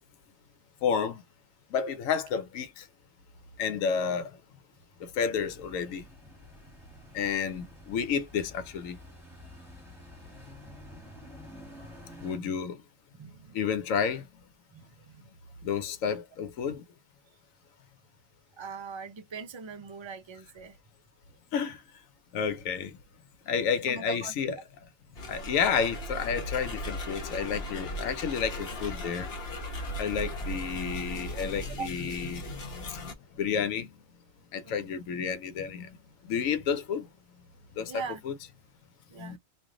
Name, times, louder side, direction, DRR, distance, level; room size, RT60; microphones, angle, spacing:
voice 1, 0.8-1.2 1.7-2.8 3.6-4.3 5.0-6.0 7.1-9.0 12.2-12.8 13.5-14.2 15.6-16.8 21.5-21.8 22.3-22.9 23.5-24.6 25.3-29.3 30.0-32.5 33.4-33.9 34.5-35.9 36.3-37.1 37.8-38.3 39.2-39.4, left 7 dB, 85° left, 1.1 m, -30 dB
sound 1, 5.4-12.4, left 1 dB, ahead, 1.3 m, -49 dB
voice 2, 12.2-12.6 13.1-13.6 14.7-15.3 18.6-20.8 23.8-24.6 30.1-30.4 31.8-31.9 34.6-35.0 36.4-36.5 37.9-38.2 39.1-39.4, right 5 dB, 50° right, 0.3 m, -42 dB
sound 2, 25.2-33.1, equal, 55° left, 1.1 m, -37 dB
3.2 x 2.5 x 3.6 m
omnidirectional pair, 1.4 m